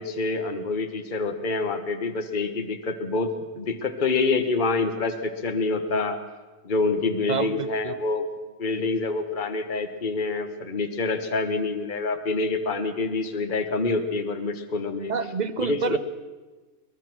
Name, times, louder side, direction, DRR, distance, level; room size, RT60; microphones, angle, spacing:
voice 1, 0.0-3.3 3.6-6.2 6.6-8.3 8.6-15.1 15.6-16.0, left 3 dB, 35° left, 7 dB, 1.4 m, -26 dB
voice 2, 7.3-7.9 15.1-16.0, right 5 dB, 40° right, 11 dB, 0.6 m, -28 dB
23.0 x 20.5 x 6.2 m, 1.3 s
omnidirectional pair, 1.6 m